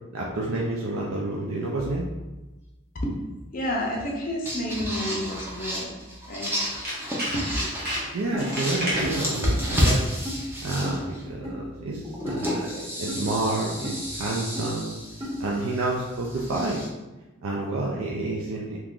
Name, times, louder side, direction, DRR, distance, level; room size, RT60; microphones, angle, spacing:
voice 1, 0.1-2.1 8.1-10.0 10.6-12.7 13.0-15.0 15.4-16.8 17.4-18.8, right 2 dB, 85° right, -3 dB, 0.4 m, -29 dB
sound 1, 1.8-2.3 4.1-4.2 4.4-8.1 8.4-11.2 12.0-16.9, equal, 10° right, 0.5 m, -31 dB
voice 2, 3.5-6.0 6.3-6.5 7.3-7.5, equal, 40° left, -1 dB, 0.5 m, -30 dB
Tools, 6.4-9.2 9.7-10.0 10.3-10.4, equal, 50° right, 0.9 m, -32 dB
sound 2, 8.3-8.5 9.0-9.1 9.6-9.7 10.2-10.4 10.8-11.0 11.4-11.6 12.3-12.4 13.1-13.2 13.8-14.0 14.5-14.6 15.2-15.3, equal, 30° right, 1.0 m, -34 dB
2.9 x 2.4 x 3.6 m, 1.1 s
head